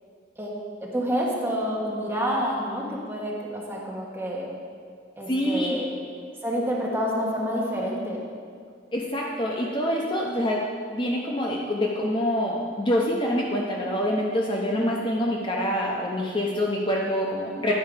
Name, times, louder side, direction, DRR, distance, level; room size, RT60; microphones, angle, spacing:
voice 1, 0.8-4.5 5.2-5.9 6.4-8.2, equal, 10° right, -4 dB, 1.2 m, -28 dB
voice 2, 5.3-5.8 8.9-10.6 10.9-17.7, equal, 25° left, -2 dB, 0.6 m, -26 dB
10.5 x 4.6 x 4.8 m, 2.1 s
head